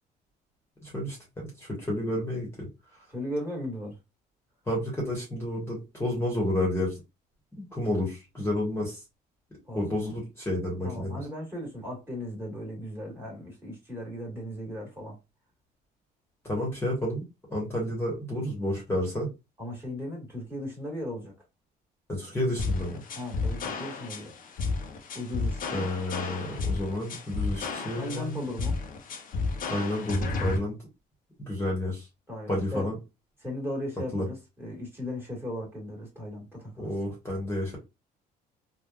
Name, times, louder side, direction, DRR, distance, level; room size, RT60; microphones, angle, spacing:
voice 1, 0.8-2.7 4.7-7.0 7.7-9.0 9.7-11.2 16.4-17.2 17.5-19.3 22.1-23.0 25.7-28.4 29.7-30.8 31.4-32.1 32.5-33.0 34.1-34.3 36.8-37.8, left 1 dB, 15° left, 1.2 m, -30 dB
voice 2, 3.1-4.0 9.7-10.1 10.8-15.2 19.6-21.3 23.1-24.3 25.1-25.9 28.0-28.8 32.3-32.9 33.4-36.9, left 1 dB, 15° right, 1.7 m, -37 dB
sound 1, 22.6-30.6, left 3 dB, 55° left, 0.7 m, -32 dB
3.3 x 2.3 x 2.4 m
cardioid pair, 110°, 17 cm